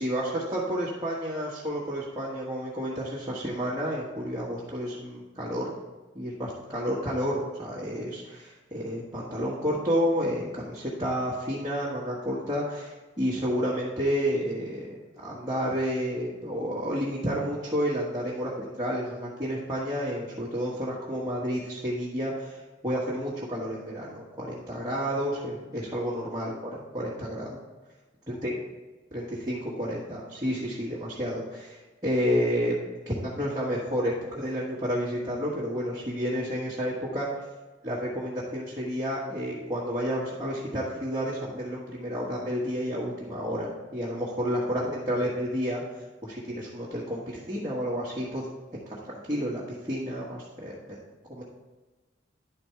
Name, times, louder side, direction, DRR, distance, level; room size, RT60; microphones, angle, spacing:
voice 1, 0.0-5.7 6.1-27.6 28.3-28.5 29.1-32.7 33.0-37.3 37.8-48.4 49.0-51.0 51.3-51.4, equal, 20° right, -7 dB, 1.3 m, -30 dB
10.5 x 4.3 x 4.5 m, 1.2 s
head